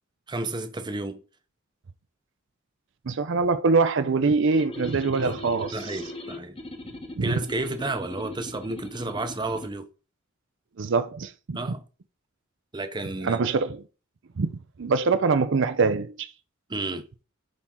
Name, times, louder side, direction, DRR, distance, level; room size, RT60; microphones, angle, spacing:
voice 1, 0.3-1.2 5.2-5.4 5.7-6.6 7.2-9.9 11.5-11.8 12.7-13.4 16.7-17.1, right 2 dB, 20° right, 0.8 m, -31 dB
voice 2, 3.1-5.9 7.2-7.3 10.8-11.6 13.2-13.8 14.4-14.5 14.8-16.3, right 4 dB, 65° right, 0.5 m, -24 dB
sound 1, 4.5-9.7, left 1 dB, 25° left, 1.0 m, -40 dB
10.0 x 4.3 x 3.7 m
head